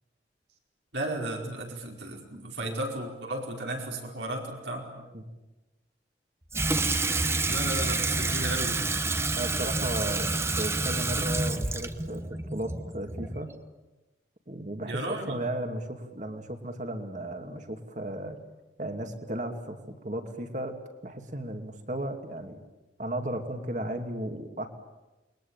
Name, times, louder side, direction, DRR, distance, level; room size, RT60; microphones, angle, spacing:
voice 1, 0.9-4.9 7.4-8.8 14.8-15.4, right 1 dB, 80° right, 0 dB, 4.9 m, -34 dB
Water tap faucet / Sink (filling or washing), 6.5-13.6, right 3 dB, 15° right, 1.0 m, -28 dB
voice 2, 9.4-10.3 10.6-13.5 14.5-18.4 18.8-20.7 21.0-22.6 23.0-24.7, right 1 dB, 40° right, 6 dB, 2.6 m, -35 dB
29.0 x 22.0 x 8.9 m, 1.1 s
head